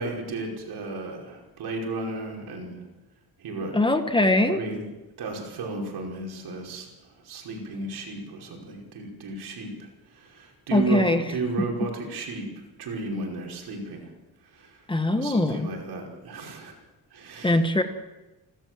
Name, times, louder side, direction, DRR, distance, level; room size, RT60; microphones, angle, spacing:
voice 1, 0.0-2.8 3.4-3.8 4.5-4.8 5.2-6.9 7.2-9.9 10.1-12.5 12.8-14.1 14.5-14.7 15.2-16.7 17.1-17.6, right 2 dB, 80° right, 0 dB, 5.3 m, -34 dB
voice 2, 3.7-4.6 10.7-11.3 14.9-15.7 17.4-17.8, left 1 dB, 15° left, 8 dB, 1.3 m, -22 dB
29.5 x 13.0 x 7.7 m, 1.1 s
cardioid pair, 155°, 38 cm